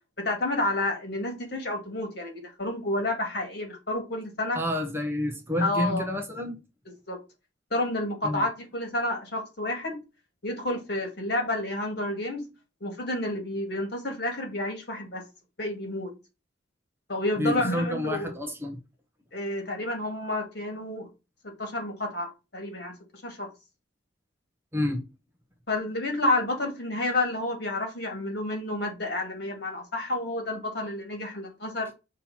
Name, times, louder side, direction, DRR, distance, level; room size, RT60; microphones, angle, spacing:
voice 1, 0.2-4.6 5.6-6.0 7.1-7.2 7.7-10.0 10.4-12.4 12.8-15.2 15.6-16.1 17.1-18.3 19.3-21.1 21.4-22.9 23.2-23.5 25.7-31.9, left 1 dB, 55° left, 2.1 m, -30 dB
voice 2, 4.5-6.6 8.2-8.4 17.4-18.8 24.7-25.0, left 1 dB, 10° right, 0.8 m, -29 dB
5.7 x 3.0 x 5.5 m
head